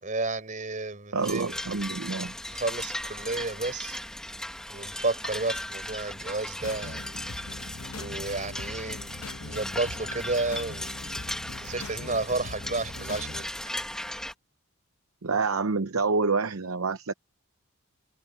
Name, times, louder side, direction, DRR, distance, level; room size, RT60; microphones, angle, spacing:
voice 1, 0.0-1.6 2.5-4.0 4.7-7.0 7.9-10.9 11.6-13.5, right 3 dB, 35° right, 4.8 m, -32 dB
voice 2, 1.1-2.3 15.2-17.1, right 4 dB, 70° right, 0.8 m, -27 dB
sound 1, 1.2-14.3, left 1 dB, 5° left, 1.2 m, -37 dB
sound 2, 6.6-13.4, left 3 dB, 70° left, 1.2 m, -41 dB
head